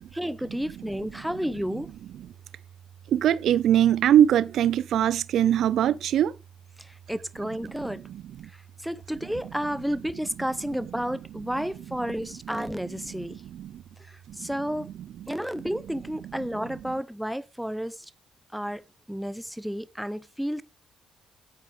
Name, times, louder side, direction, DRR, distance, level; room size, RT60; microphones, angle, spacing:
voice 1, 0.0-1.9 6.8-8.0 8.4-13.4 14.0-14.9 15.3-18.1 18.5-20.6, equal, ahead, 0.8 m, -32 dB
voice 2, 3.1-6.3 8.0-8.2 13.4-13.8 14.3-14.5, right 10 dB, 75° right, 0.6 m, -22 dB
10.0 x 8.2 x 3.8 m
cardioid pair, 90°, 0 cm